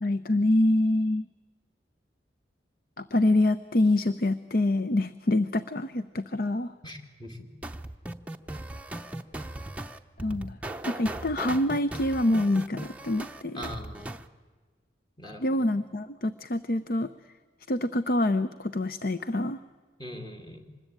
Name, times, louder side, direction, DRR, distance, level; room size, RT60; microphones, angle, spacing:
voice 1, 0.0-1.3 3.0-6.7 10.2-10.6 10.9-13.6 15.4-17.1 17.7-19.6, left 1 dB, 50° left, 13 dB, 0.7 m, -26 dB
voice 2, 6.8-7.5 13.5-14.1 15.2-15.7 20.0-20.7, equal, 25° left, 4 dB, 2.3 m, -41 dB
sound 1, 7.6-14.3, right 1 dB, 5° right, 0.7 m, -38 dB
25.5 x 21.0 x 8.9 m, 1.5 s
head